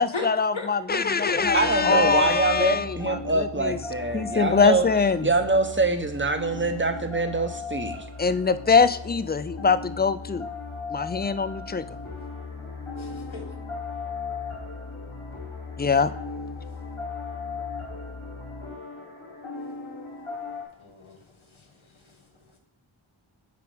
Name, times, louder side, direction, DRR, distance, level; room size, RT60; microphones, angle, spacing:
voice 1, 0.0-3.8 4.1-5.3 8.2-10.5 10.9-11.9 15.8-16.1, left 5 dB, 20° left, 14 dB, 0.3 m, -23 dB
voice 2, 0.5-1.4 1.9-2.0 13.0-13.5 20.8-21.2, left 4 dB, 70° left, 4 dB, 1.6 m, -35 dB
sound 1, 1.4-20.6, left 4 dB, 90° left, 2.6 m, -37 dB
voice 3, 1.5-4.9 5.2-8.0, right 3 dB, 25° right, 8 dB, 0.8 m, -24 dB
9.4 x 4.9 x 3.5 m, 0.83 s
wide cardioid pair, 45°, 49 cm